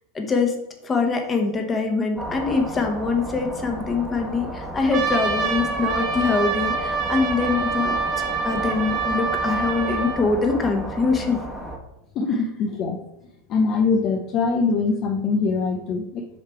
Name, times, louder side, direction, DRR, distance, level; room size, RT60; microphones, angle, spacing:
voice 1, 0.1-0.5 0.8-7.9 8.4-11.4, left 4 dB, 25° left, 3 dB, 1.3 m, -23 dB
sound 1, 2.2-11.8, right 1 dB, 5° right, 1.3 m, -33 dB
Trumpet, 4.9-10.2, right 4 dB, 45° right, 1.3 m, -26 dB
voice 2, 12.2-13.0 13.5-16.3, left 4 dB, 40° left, 3 dB, 0.6 m, -23 dB
6.8 x 3.2 x 4.5 m, 0.85 s
hypercardioid pair, 90°, 0 cm